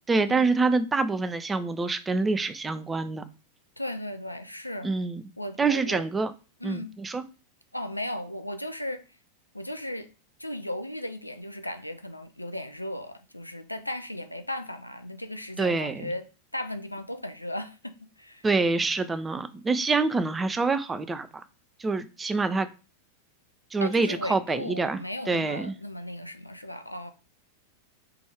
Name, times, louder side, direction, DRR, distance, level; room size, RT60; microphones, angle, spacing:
voice 1, 0.1-3.2 4.8-5.2 5.6-6.3 6.6-7.2 15.6-16.1 18.4-21.4 21.8-22.7 23.7-25.0 25.3-25.7, right 3 dB, 15° right, 0.4 m, -26 dB
voice 2, 3.8-4.9 5.4-6.1 6.6-6.9 7.7-9.0 9.5-10.1 10.4-16.3 16.5-18.5 23.8-27.1, left 1 dB, 85° left, 0.4 m, -36 dB
4.6 x 2.6 x 3.3 m
figure-of-eight pair, 90°, 0 cm